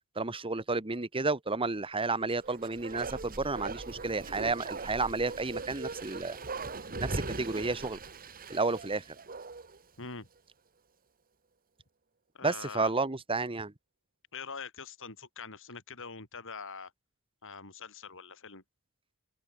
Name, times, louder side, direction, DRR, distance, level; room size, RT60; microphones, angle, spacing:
voice 1, 0.1-6.4 7.0-8.0 8.5-9.1 12.4-13.7, right 3 dB, 25° right, 1.3 m, -31 dB
Bark, 2.2-9.8 10.1-10.2, right 3 dB, 40° right, 2.0 m, -40 dB
voice 2, 10.0-10.3 12.3-12.9 14.3-16.9 17.4-18.6, left 5 dB, 60° left, 7.7 m, -44 dB
open air
head